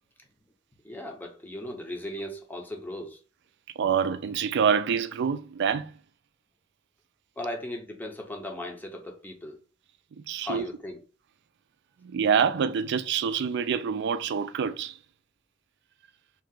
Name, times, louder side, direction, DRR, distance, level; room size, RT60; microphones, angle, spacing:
voice 1, 0.8-3.2 7.4-9.6 10.4-11.0, left 1 dB, 10° left, 0.6 m, -37 dB
voice 2, 3.8-5.9 10.2-10.6 12.0-15.0, right 7 dB, 60° right, 0.3 m, -26 dB
2.7 x 2.3 x 3.7 m
head